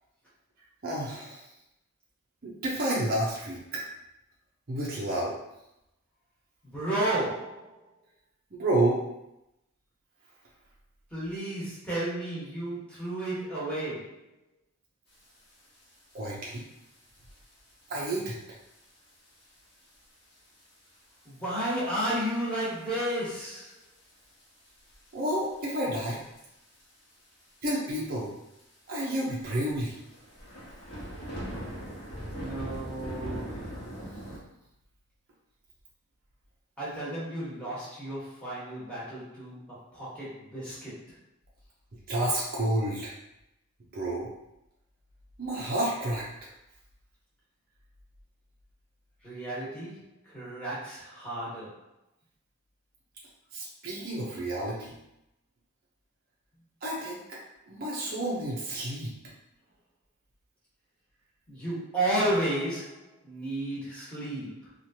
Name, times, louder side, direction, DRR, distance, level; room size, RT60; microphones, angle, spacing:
voice 1, 0.8-1.4 2.4-3.8 4.7-5.4 8.5-9.0 16.1-16.6 17.9-18.4 25.1-26.2 27.6-28.3 28.9-30.0 42.1-43.1 43.9-44.3 45.4-46.2 53.5-54.9 56.8-57.4 57.7-59.1, right 1 dB, 40° right, -5 dB, 0.6 m, -30 dB
voice 2, 6.6-7.8 11.1-14.1 21.2-23.7 32.3-33.7 36.8-41.0 49.2-51.7 61.5-64.7, right 1 dB, 5° left, -10 dB, 1.2 m, -32 dB
sound 1, 15.7-15.8 16.1-16.5 17.1-17.3 17.9-18.0 18.7-18.8 19.1-19.2 19.4-19.5 20.6-20.9 21.3-21.4 22.2-22.3 22.9-23.3 23.7-23.8 24.4-25.1 26.1-26.4 26.7-26.8 27.1-27.2 27.4-27.5 28.1-28.2 28.6-28.7 29.3-34.4, equal, 50° left, 1.1 m, -40 dB
3.0 x 2.4 x 2.7 m, 0.87 s
head